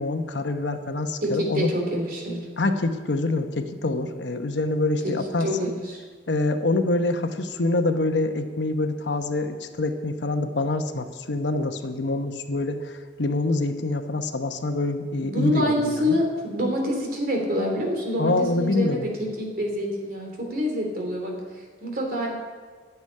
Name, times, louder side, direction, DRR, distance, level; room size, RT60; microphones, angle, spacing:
voice 1, 0.0-1.7 2.6-5.7 6.3-16.2 18.2-19.1, left 2 dB, 80° left, 7 dB, 1.0 m, -26 dB
voice 2, 1.2-2.4 5.0-5.1 5.4-6.0 15.2-22.3, equal, 55° right, 1 dB, 3.2 m, -27 dB
12.0 x 7.1 x 9.8 m, 1.5 s
head